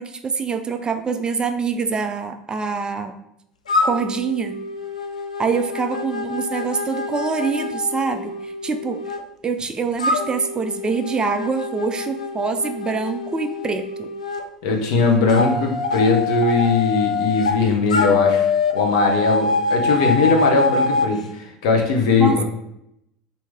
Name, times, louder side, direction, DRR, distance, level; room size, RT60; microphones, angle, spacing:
voice 1, 0.0-3.2 3.8-4.6 5.4-9.0 9.4-14.1 22.2-22.4, right 5 dB, 25° right, 7 dB, 0.3 m, -25 dB
sound 1, 3.7-9.2 10.0-14.4 15.3-17.6 17.9-21.1, left 4 dB, 85° left, 0.3 m, -24 dB
voice 2, 14.6-18.5 18.7-22.4, left 4 dB, 65° left, 2 dB, 0.7 m, -19 dB
3.0 x 2.7 x 3.4 m, 0.80 s
figure-of-eight pair, 70°, 4 cm